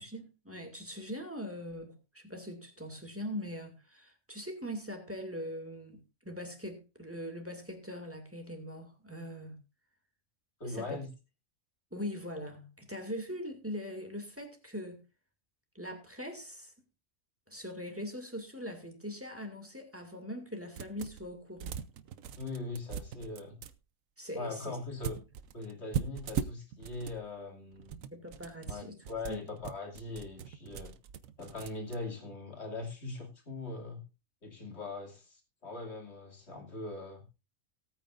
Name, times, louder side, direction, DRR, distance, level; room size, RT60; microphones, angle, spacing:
voice 1, 0.0-9.6 10.6-11.0 11.9-15.0 15.7-16.7 17.5-21.8 24.2-24.8 28.1-29.0 29.3-29.4, equal, 10° right, 2.3 m, -41 dB
voice 2, 10.6-11.1 22.4-23.6 24.4-25.2 25.5-28.0 28.6-30.9 31.4-34.0 34.4-37.2, left 3 dB, 55° left, 2.9 m, -41 dB
sound 1, 20.8-21.3 21.6-23.7 25.0-27.2 27.7-32.0, right 8 dB, 80° right, 1.1 m, -40 dB
18.5 x 8.9 x 2.5 m
omnidirectional pair, 1.4 m